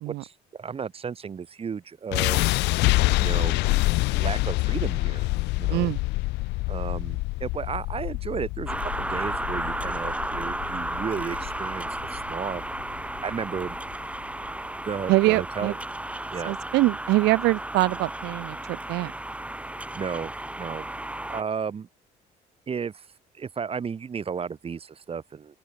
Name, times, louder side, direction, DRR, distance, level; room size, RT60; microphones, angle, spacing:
voice 1, 0.1-2.4 3.2-3.6 4.1-5.3 5.6-5.9 6.7-12.6 13.2-13.8 14.9-15.7 16.3-16.6 19.8-20.3 20.6-20.9 21.3-21.9 22.7-23.1 23.3-25.6, right 6 dB, 35° right, 2.5 m, -33 dB
sound 1, 2.1-14.2, left 22 dB, 90° left, 0.6 m, -27 dB
voice 2, 5.7-6.0 15.1-15.7 16.5-19.1, right 19 dB, 85° right, 1.0 m, -24 dB
sound 2, 8.7-21.4, right 1 dB, 5° right, 3.9 m, -33 dB
open air
cardioid pair, 110°, 17 cm